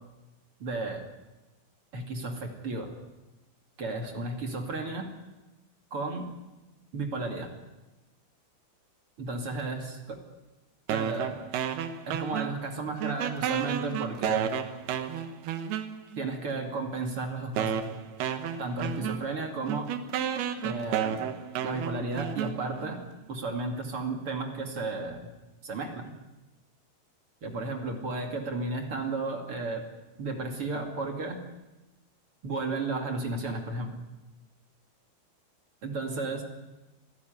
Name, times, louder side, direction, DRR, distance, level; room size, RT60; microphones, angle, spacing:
voice 1, 0.6-1.0 1.9-2.9 3.8-5.1 5.9-6.2 6.9-7.5 9.2-10.2 10.9-11.4 12.0-14.5 16.2-17.8 18.6-19.9 20.6-21.2 21.6-23.0 23.3-25.3 25.6-26.1 27.4-29.8 30.2-31.4 32.4-33.9 35.8-36.4, right 3 dB, 40° right, 3 dB, 3.0 m, -33 dB
sound 1, 10.9-12.7 13.0-16.3 17.0-17.1 17.6-23.0, right 9 dB, 80° right, 3.2 m, -32 dB
27.0 x 16.0 x 9.4 m, 1.0 s
omnidirectional pair, 4.6 m